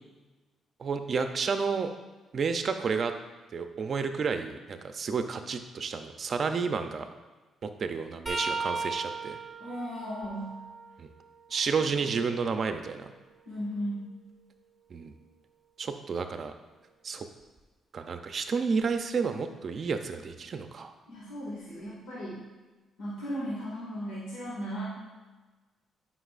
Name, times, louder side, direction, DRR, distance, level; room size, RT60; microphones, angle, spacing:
voice 1, 0.8-1.9 2.3-3.1 3.5-7.1 7.6-9.4 11.0-11.1 11.5-13.1 14.9-15.1 15.8-16.5 17.0-17.3 17.9-20.9, right 5 dB, 50° right, 7 dB, 0.5 m, -31 dB
sound 1, 8.3-12.0 12.5-14.5 17.4-17.6 18.8-19.0 20.3-20.4, right 3 dB, 15° right, 1.0 m, -39 dB
voice 2, 9.6-10.6 13.5-14.1 21.1-22.5 23.0-24.9, equal, 85° left, -8 dB, 2.0 m, -36 dB
10.0 x 5.6 x 2.5 m, 1.2 s
cardioid pair, 90°, 0 cm